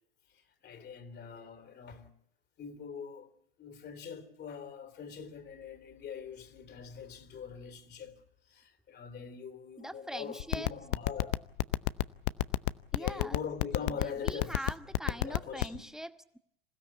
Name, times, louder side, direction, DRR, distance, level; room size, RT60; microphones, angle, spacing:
voice 1, 0.4-2.1 2.6-3.3 3.6-8.2 8.5-11.4 12.9-14.8 15.1-15.9, left 6 dB, 35° left, 3.5 m, -43 dB
voice 2, 9.8-10.7 12.9-13.4 14.0-16.4, right 1 dB, ahead, 1.2 m, -42 dB
sound 1, 10.4-15.8, left 19 dB, 60° left, 0.8 m, -27 dB
27.0 x 16.0 x 8.4 m
hypercardioid pair, 90°, 30 cm